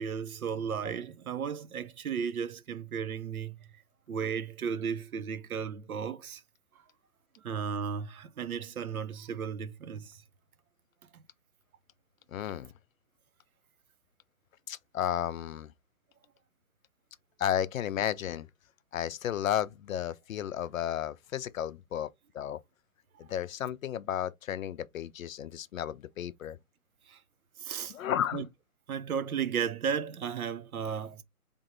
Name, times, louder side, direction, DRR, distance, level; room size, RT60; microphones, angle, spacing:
voice 1, 0.0-3.6 4.1-6.4 7.4-10.1 27.1-27.2 27.6-27.9 28.3-28.5 28.9-31.2, right 7 dB, 75° right, 0.7 m, -34 dB
voice 2, 12.3-12.7 14.7-15.7 17.4-18.5 18.9-22.6 23.2-26.6 27.9-28.5, left 10 dB, 65° left, 0.5 m, -33 dB
3.5 x 3.0 x 4.3 m
hypercardioid pair, 145°, 44 cm